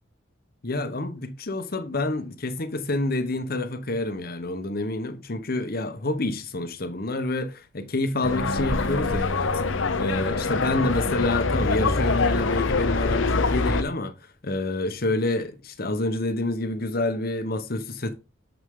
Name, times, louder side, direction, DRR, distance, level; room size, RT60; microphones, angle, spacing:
voice 1, 0.6-9.6 10.0-14.1 14.4-18.1, left 2 dB, 50° left, 1.0 m, -28 dB
sound 1, 8.2-13.8, left 3 dB, 75° left, 0.8 m, -24 dB
7.2 x 6.3 x 3.7 m
head